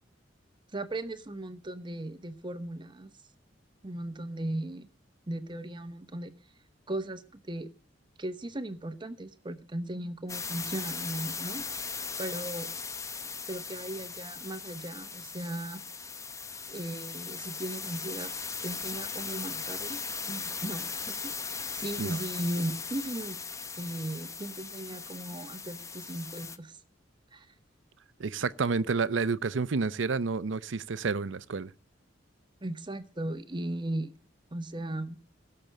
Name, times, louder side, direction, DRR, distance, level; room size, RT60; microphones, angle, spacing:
voice 1, 0.7-3.1 3.8-4.9 5.3-6.3 6.9-7.7 8.2-11.7 12.2-12.7 13.5-15.8 16.7-18.3 18.6-20.0 20.3-21.4 21.7-23.4 23.8-26.8 27.3-27.5 32.6-34.1 34.5-35.2, right 1 dB, 25° right, 1.0 m, -37 dB
sound 1, 10.3-26.6, left 5 dB, 15° left, 0.7 m, -38 dB
voice 2, 28.2-31.7, right 4 dB, 80° right, 0.6 m, -30 dB
17.0 x 6.8 x 7.5 m
head